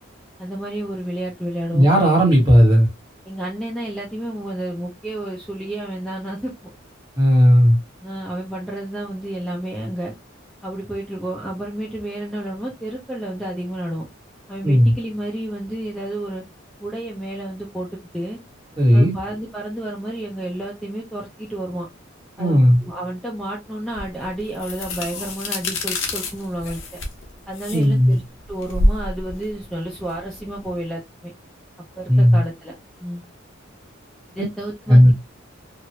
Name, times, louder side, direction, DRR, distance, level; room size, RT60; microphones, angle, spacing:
voice 1, 0.4-1.9 3.2-6.5 8.0-10.1 10.6-14.1 14.5-16.4 16.8-17.9 18.1-18.4 18.9-21.9 22.4-27.0 27.5-28.2 28.5-31.3 32.0-32.7 33.0-33.2 34.4-35.1, right 1 dB, 5° left, 0.5 m, -30 dB
voice 2, 1.7-2.9 7.2-7.8 14.6-14.9 18.8-19.1 22.4-22.8 27.7-28.2 32.1-32.4 34.9-35.1, equal, 20° right, 1.4 m, -14 dB
sound 1, 24.0-30.7, left 1 dB, 70° left, 1.0 m, -27 dB
3.0 x 2.6 x 2.8 m
head